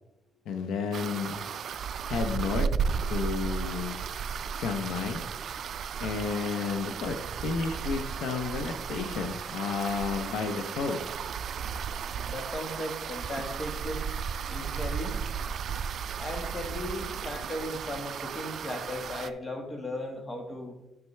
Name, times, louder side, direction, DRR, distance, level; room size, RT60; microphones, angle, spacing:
voice 1, 0.5-1.4 2.1-2.7 3.1-4.0 4.6-5.2 6.0-7.2 7.4-11.0, left 5 dB, 80° left, 7 dB, 0.7 m, -31 dB
sound 1, 0.9-19.3, right 6 dB, 60° right, 0.3 m, -34 dB
voice 2, 12.3-14.0 14.5-15.1 16.2-20.7, left 1 dB, 30° left, 4 dB, 1.6 m, -36 dB
9.5 x 5.9 x 3.3 m, 0.94 s
cardioid pair, 90°, 0 cm